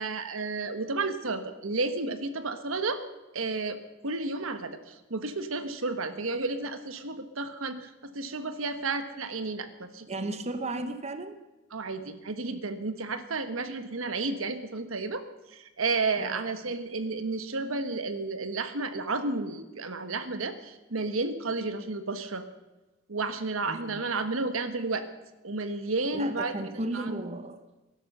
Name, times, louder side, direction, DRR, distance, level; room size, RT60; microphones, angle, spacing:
voice 1, 0.0-3.0 3.3-10.3 11.7-15.2 15.5-22.4 23.1-25.0 25.4-26.7 26.9-27.1, right 3 dB, 85° right, 9 dB, 1.3 m, -32 dB
voice 2, 10.1-11.4 16.2-16.4 23.7-24.0 26.1-27.6, right 2 dB, 30° right, 9 dB, 0.9 m, -34 dB
18.5 x 11.0 x 6.8 m, 1.1 s
head